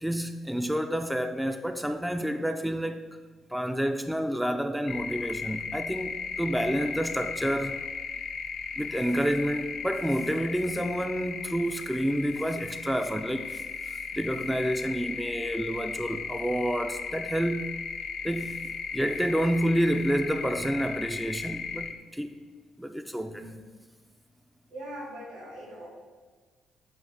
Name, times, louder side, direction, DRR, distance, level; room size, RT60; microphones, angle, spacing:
voice 1, 0.0-3.1 3.5-7.8 8.8-13.6 14.1-17.7 18.2-18.6 18.9-22.3 22.8-23.5, equal, 5° right, 0.4 m, -29 dB
sound 1, 4.9-21.9, left 5 dB, 60° left, 0.6 m, -36 dB
voice 2, 23.2-23.6 24.7-25.9, right 1 dB, 85° right, 2.0 m, -42 dB
7.8 x 2.7 x 5.6 m
figure-of-eight pair, 45°, 0 cm